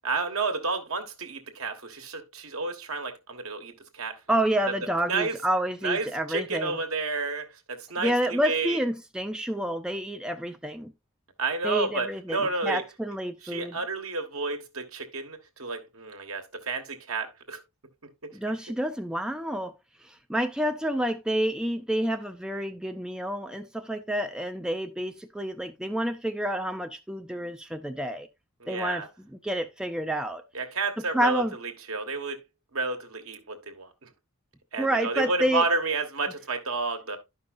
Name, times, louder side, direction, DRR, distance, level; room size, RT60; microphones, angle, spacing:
voice 1, 0.0-4.2 4.6-4.7 5.1-5.4 5.8-8.8 11.4-12.8 13.4-17.6 18.2-18.3 28.6-29.1 30.5-32.4 32.7-34.1 34.7-37.2, right 3 dB, 75° right, 1.3 m, -31 dB
voice 2, 4.3-6.8 8.0-10.9 11.6-13.8 18.3-19.7 20.3-28.3 28.7-29.0 29.3-30.4 31.1-31.5 34.8-35.6, right 1 dB, 5° right, 0.4 m, -29 dB
11.5 x 5.5 x 2.4 m
head